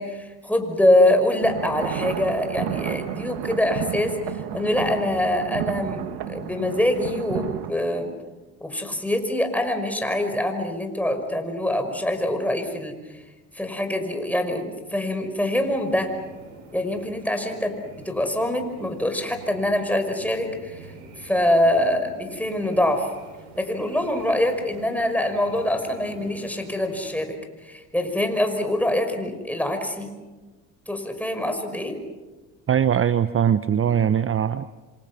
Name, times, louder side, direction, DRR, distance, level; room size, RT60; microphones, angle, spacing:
voice 1, 0.0-8.1 8.6-13.2 13.5-16.1 16.7-20.9 21.2-23.1 23.6-27.3 27.6-30.1 30.9-32.0, left 1 dB, 5° left, 5 dB, 5.7 m, -24 dB
sound 1, 1.4-7.7, right 12 dB, 65° right, 1.9 m, -31 dB
sound 2, 15.5-27.2, right 3 dB, 90° right, 7.4 m, -45 dB
voice 2, 32.7-34.6, right 9 dB, 30° right, 14 dB, 0.8 m, -21 dB
27.0 x 27.0 x 6.3 m, 1.2 s
hypercardioid pair, 65°, 42 cm